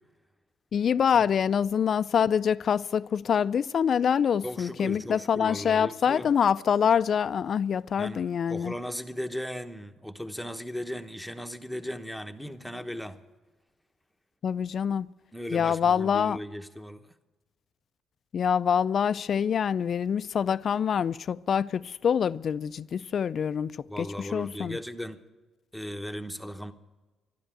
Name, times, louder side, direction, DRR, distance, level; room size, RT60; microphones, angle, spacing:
voice 1, 0.7-8.7 14.4-15.1 15.5-16.4 18.3-23.7 24.0-24.8, left 7 dB, 55° left, 0.4 m, -25 dB
voice 2, 4.4-6.3 8.0-13.2 15.3-17.1 23.9-25.2 25.7-26.7, equal, ahead, 1.0 m, -37 dB
12.5 x 12.0 x 9.0 m
cardioid pair, 90°, 0 cm